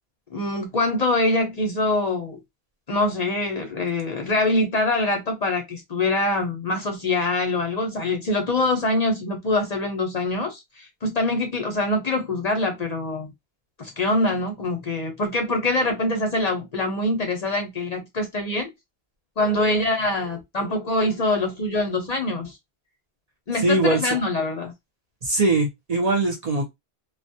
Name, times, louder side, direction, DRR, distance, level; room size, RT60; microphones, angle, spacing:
voice 1, 0.3-2.4 2.9-13.3 13.8-18.7 19.4-22.6 23.5-24.7, left 2 dB, 50° left, 0.6 m, -24 dB
voice 2, 23.6-24.0 25.2-26.7, right 2 dB, 45° right, 0.6 m, -21 dB
2.2 x 2.1 x 2.6 m
omnidirectional pair, 1.0 m